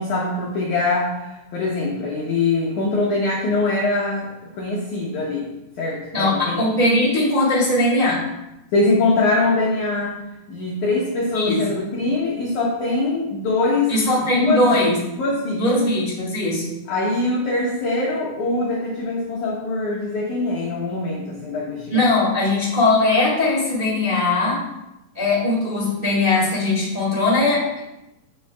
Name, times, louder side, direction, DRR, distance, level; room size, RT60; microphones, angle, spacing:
voice 1, 0.0-5.5 5.8-6.6 8.7-10.2 10.5-13.9 14.4-14.8 15.2-15.9 16.9-22.0, left 2 dB, 90° left, -4 dB, 1.7 m, -23 dB
voice 2, 6.1-8.2 11.3-11.6 13.9-15.0 15.5-16.7 21.9-24.6 25.1-27.9, left 2 dB, 25° right, -7 dB, 1.2 m, -20 dB
9.2 x 6.6 x 2.3 m, 0.92 s
omnidirectional pair, 5.0 m